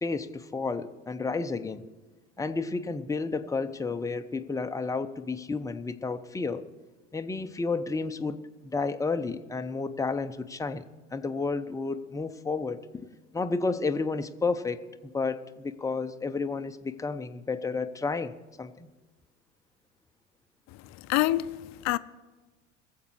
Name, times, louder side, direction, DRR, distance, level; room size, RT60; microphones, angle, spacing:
voice 1, 0.0-1.9 2.4-6.6 7.1-13.1 13.3-18.9, left 4 dB, 10° left, 0.8 m, -31 dB
voice 2, 21.1-22.0, left 16 dB, 45° left, 0.6 m, -26 dB
22.0 x 7.5 x 4.6 m
hypercardioid pair, 75°, 39 cm